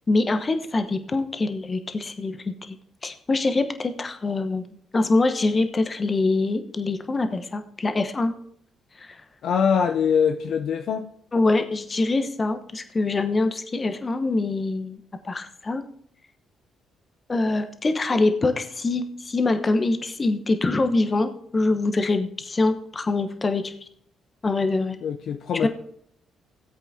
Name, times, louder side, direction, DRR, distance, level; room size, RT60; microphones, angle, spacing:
voice 1, 0.1-4.6 4.9-8.3 11.3-15.0 15.2-15.8 17.3-23.7 24.4-25.0 25.6-25.7, left 3 dB, 35° left, 8 dB, 1.0 m, -24 dB
voice 2, 9.4-11.1 25.0-25.7, left 7 dB, 60° left, 6 dB, 0.5 m, -23 dB
16.5 x 8.1 x 2.8 m, 0.67 s
hypercardioid pair, 45°, 0 cm